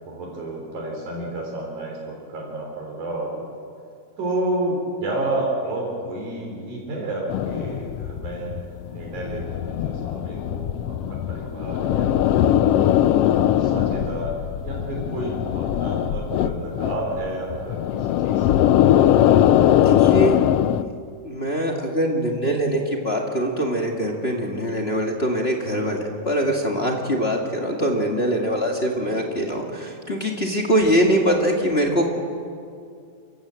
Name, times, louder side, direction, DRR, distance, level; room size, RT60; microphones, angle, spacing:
voice 1, 0.1-3.6 4.2-12.7 13.3-14.3 14.6-18.5 29.0-29.2, right 1 dB, 85° right, -2 dB, 5.1 m, -30 dB
sound 1, 7.3-20.8, left 11 dB, 85° left, 1.3 m, -21 dB
voice 2, 19.8-20.4 21.2-32.1, equal, 25° left, 0 dB, 1.8 m, -23 dB
28.0 x 15.5 x 7.6 m, 2.3 s
omnidirectional pair, 3.4 m